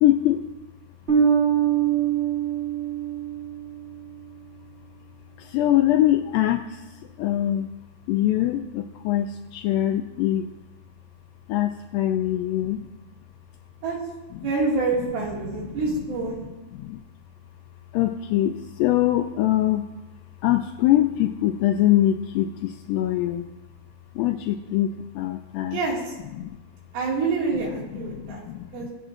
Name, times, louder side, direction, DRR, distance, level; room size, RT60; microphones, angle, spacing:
voice 1, 0.0-0.5 5.4-6.8 7.2-7.7 8.1-10.5 11.5-12.8 14.3-14.5 15.3-16.5 16.8-17.0 17.9-19.8 20.4-23.5 24.2-25.8 26.3-26.6 27.5-28.9, left 13 dB, 85° left, 5 dB, 2.0 m, -23 dB
Bass guitar, 1.1-4.1, right 8 dB, 20° right, 2.5 m, -23 dB
voice 2, 14.4-16.5 25.7-26.0 26.9-28.4 28.7-28.9, right 4 dB, 75° right, -3 dB, 4.0 m, -26 dB
20.0 x 7.9 x 2.5 m, 1.1 s
omnidirectional pair, 4.4 m